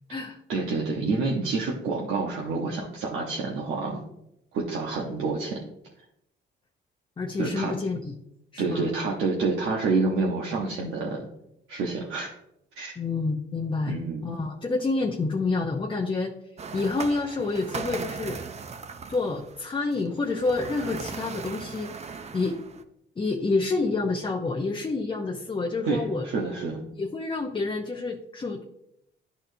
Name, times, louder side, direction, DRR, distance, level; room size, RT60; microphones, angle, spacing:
voice 1, 0.5-4.0 4.5-5.6 7.4-7.7 8.6-11.3 11.7-12.3 12.7-12.9 13.9-14.2 25.9-26.8, right 3 dB, 85° right, -3 dB, 1.1 m, -28 dB
voice 2, 7.2-8.1 8.5-8.9 13.0-16.3 16.7-18.4 19.1-21.9 22.3-22.6 23.2-26.3 27.0-28.6, left 3 dB, 25° left, 1 dB, 0.7 m, -28 dB
sound 1, 16.6-22.8, right 5 dB, 35° right, 0.6 m, -38 dB
11.0 x 4.3 x 2.7 m, 0.79 s
cardioid pair, 90°, 20 cm